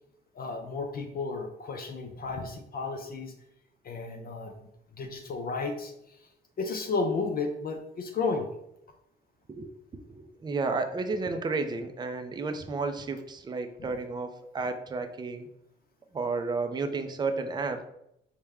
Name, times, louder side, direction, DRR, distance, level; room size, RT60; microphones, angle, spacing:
voice 1, 0.4-3.3 3.8-4.5 5.0-6.2 6.6-8.5, left 4 dB, 50° left, 3 dB, 0.5 m, -33 dB
voice 2, 10.1-15.5 16.1-17.9, right 3 dB, 20° right, 7 dB, 0.4 m, -32 dB
4.5 x 2.1 x 3.5 m, 0.80 s
cardioid pair, 90°, 20 cm